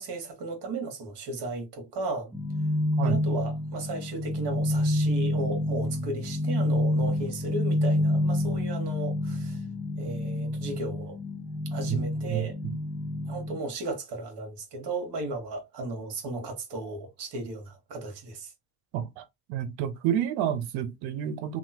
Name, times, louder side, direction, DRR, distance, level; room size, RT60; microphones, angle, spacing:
voice 1, 0.0-2.3 3.0-9.6 10.0-11.2 11.7-12.6 13.3-18.5, right 2 dB, 60° right, 1.5 m, -35 dB
sound 1, 2.3-13.6, left 1 dB, ahead, 0.6 m, -28 dB
voice 2, 12.3-12.8 18.9-19.2 19.5-21.6, right 10 dB, 85° right, 0.7 m, -29 dB
2.8 x 2.4 x 2.8 m
supercardioid pair, 85°, 45 cm